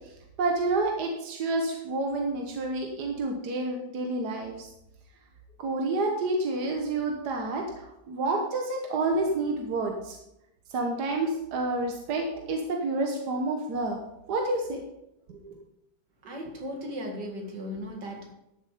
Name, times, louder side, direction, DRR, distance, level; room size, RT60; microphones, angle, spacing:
voice 1, 0.4-4.7 5.6-10.2 10.7-14.0 14.3-14.8 15.3-15.6, right 2 dB, 75° right, 2 dB, 1.7 m, -29 dB
voice 2, 16.2-18.3, equal, 90° right, 2 dB, 2.5 m, -37 dB
12.5 x 6.9 x 5.0 m, 0.86 s
omnidirectional pair, 1.8 m